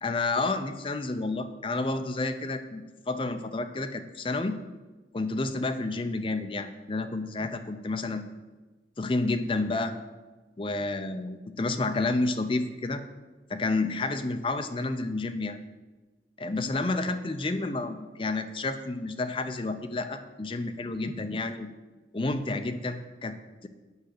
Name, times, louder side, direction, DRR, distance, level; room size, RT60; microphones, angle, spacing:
voice 1, 0.0-4.6 5.1-8.3 9.0-9.9 10.6-13.0 13.5-15.6 16.4-21.7 22.1-23.4, left 2 dB, 30° left, 7 dB, 0.5 m, -30 dB
8.1 x 5.0 x 6.6 m, 1.2 s
head